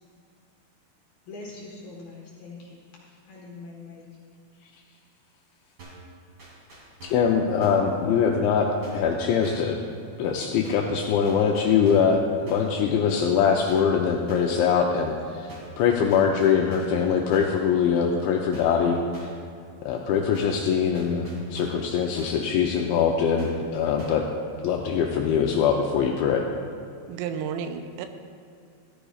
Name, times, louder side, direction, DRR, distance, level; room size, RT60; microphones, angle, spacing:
voice 1, 1.3-2.8 3.1-4.0, left 3 dB, 65° left, -4 dB, 2.5 m, -42 dB
sound 1, 5.8-6.1 6.4-7.3 7.6-7.9 8.8-9.1 9.4-9.7 10.6-11.0 11.2-12.2 12.4-12.8 13.7-14.0 14.3-14.6 15.5-15.8 16.1-17.0 17.3-17.6 18.5-18.8 19.1-19.5 20.3-20.7 20.9-21.9 22.2-22.5 23.4-23.7 24.0-24.3, right 3 dB, 35° right, 2.4 m, -45 dB
voice 2, 7.0-9.8 10.2-15.5 15.8-19.3 19.9-24.3 24.6-26.5, left 6 dB, 80° left, 1 dB, 2.7 m, -23 dB
voice 3, 27.1-28.1, right 7 dB, 85° right, 7 dB, 3.2 m, -32 dB
15.0 x 14.0 x 2.4 m, 2.4 s
omnidirectional pair, 5.9 m